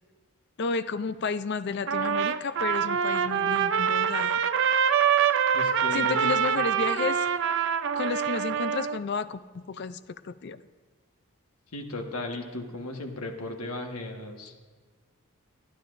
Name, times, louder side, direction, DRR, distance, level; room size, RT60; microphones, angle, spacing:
voice 1, 0.6-4.4 5.9-7.3 8.0-10.6, left 5 dB, 50° left, 13 dB, 0.4 m, -32 dB
Trumpet, 1.9-9.0, right 8 dB, 55° right, 0.5 m, -25 dB
voice 2, 5.5-6.4 11.7-14.6, left 2 dB, 85° left, 3 dB, 1.4 m, -36 dB
25.0 x 10.0 x 2.6 m, 1.5 s
head